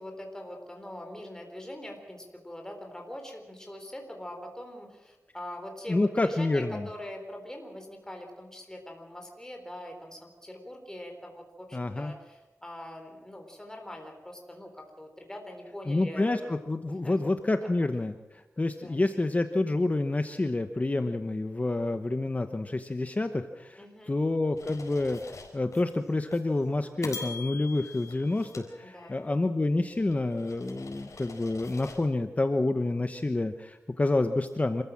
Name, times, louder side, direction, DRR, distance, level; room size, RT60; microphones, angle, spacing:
voice 1, 0.0-16.5 16.9-17.2 17.6-17.7 18.8-19.0 23.8-24.2 28.8-29.2, left 1 dB, 10° left, 2 dB, 3.9 m, -43 dB
voice 2, 5.9-6.9 11.7-12.1 15.9-34.8, left 2 dB, 25° left, 8 dB, 1.0 m, -28 dB
sound 1, 24.6-25.8 26.3-26.5 27.0-29.4 29.9-32.0, left 4 dB, 75° left, 4.4 m, -44 dB
26.5 x 14.5 x 7.5 m, 1.0 s
wide cardioid pair, 105°, 5 cm